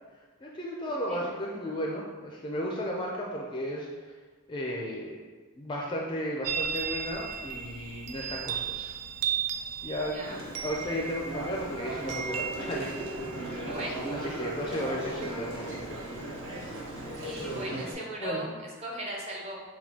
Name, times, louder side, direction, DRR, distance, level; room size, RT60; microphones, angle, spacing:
voice 1, 0.4-3.9 4.5-5.2 5.6-8.9 9.8-12.9 13.3-13.6 14.2-15.8 18.2-18.4, equal, 20° left, -2 dB, 0.4 m, -34 dB
Chime, 6.4-17.7, right 7 dB, 90° right, 0.3 m, -37 dB
sound 1, 10.2-17.9, right 1 dB, 60° right, 0.9 m, -37 dB
voice 2, 13.6-14.1 17.2-19.6, right 1 dB, 30° right, -3 dB, 0.7 m, -38 dB
6.0 x 2.2 x 2.8 m, 1.4 s
head